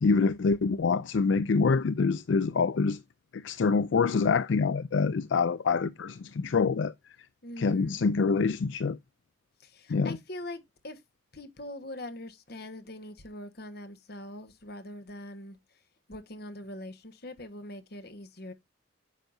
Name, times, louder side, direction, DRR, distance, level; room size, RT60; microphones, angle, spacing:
voice 1, 0.0-3.0 3.3-6.9 7.6-9.0 9.9-10.2, left 4 dB, 65° left, 0.4 m, -26 dB
voice 2, 7.4-8.0 9.6-11.0 11.3-15.6 16.1-18.5, left 1 dB, 50° left, 1.4 m, -42 dB
9.1 x 6.5 x 2.6 m
head